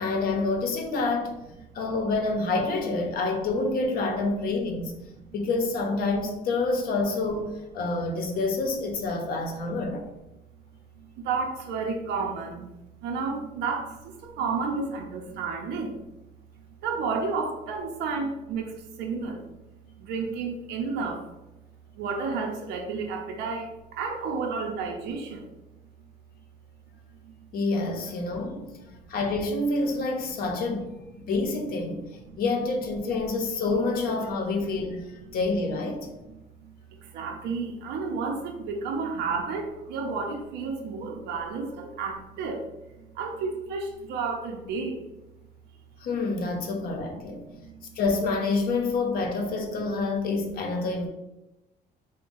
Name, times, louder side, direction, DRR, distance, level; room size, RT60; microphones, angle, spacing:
voice 1, 0.0-1.3 1.7-4.9 5.3-10.1 27.5-28.7 29.1-30.9 31.2-32.1 32.4-36.1 46.0-47.4 48.0-51.1, left 3 dB, 60° left, 3 dB, 0.7 m, -27 dB
voice 2, 11.0-12.7 13.0-16.0 16.8-18.7 19.0-19.5 19.9-21.3 22.0-25.5 27.2-27.3 28.8-28.9 30.3-30.4 32.3-32.4 36.6-36.7 37.0-42.6 43.0-45.0 47.0-48.0, right 4 dB, 85° right, 2 dB, 0.6 m, -31 dB
3.5 x 2.2 x 3.9 m, 0.96 s
cardioid pair, 110°, 17 cm